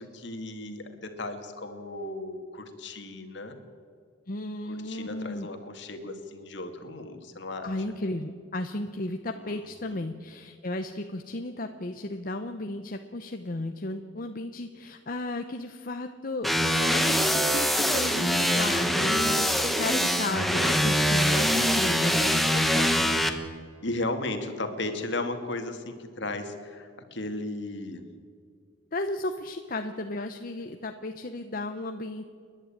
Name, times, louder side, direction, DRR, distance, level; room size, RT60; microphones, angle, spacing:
voice 1, 0.0-3.6 4.7-7.7 9.4-10.0 21.4-22.2 23.8-28.0, left 2 dB, 60° left, 6 dB, 2.3 m, -36 dB
voice 2, 4.3-5.5 7.6-23.1 28.9-32.3, left 2 dB, 45° left, 6 dB, 0.9 m, -34 dB
sound 1, 16.4-23.3, equal, ahead, 1.3 m, -24 dB
30.0 x 11.0 x 8.7 m, 2.2 s
head